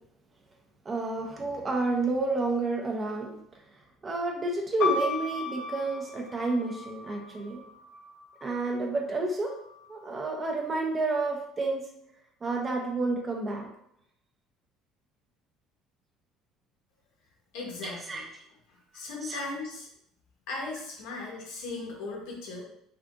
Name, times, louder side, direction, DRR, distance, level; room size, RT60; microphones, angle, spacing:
voice 1, 0.9-3.3 4.0-7.6 8.4-9.5 9.9-11.8 12.4-13.7 17.8-18.2 19.2-19.4, right 3 dB, 20° right, 1 dB, 0.5 m, -30 dB
sound 1, 4.8-8.6 9.5-10.2, left 4 dB, 50° left, 0.6 m, -35 dB
voice 2, 17.5-18.2 18.9-19.9 20.5-22.6, left 3 dB, 85° left, -1 dB, 1.0 m, -37 dB
3.4 x 2.7 x 2.4 m, 0.73 s
cardioid pair, 165°, 0 cm